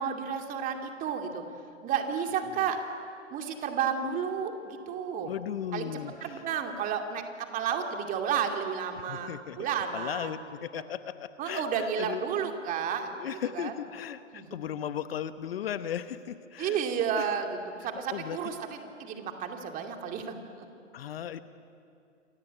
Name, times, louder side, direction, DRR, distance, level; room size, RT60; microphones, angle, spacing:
voice 1, 0.0-1.4 1.8-2.8 3.3-5.3 5.7-10.3 10.7-10.8 11.4-13.7 14.3-14.6 16.6-17.5 17.8-20.6, right 7 dB, 20° right, 4 dB, 2.5 m, -32 dB
voice 2, 5.2-6.4 9.1-9.7 9.9-12.5 13.2-16.8 17.2-17.3 17.8-18.4 20.9-21.4, left 10 dB, 50° left, 12 dB, 1.1 m, -37 dB
28.0 x 23.5 x 9.0 m, 2.5 s
figure-of-eight pair, 130°, 39 cm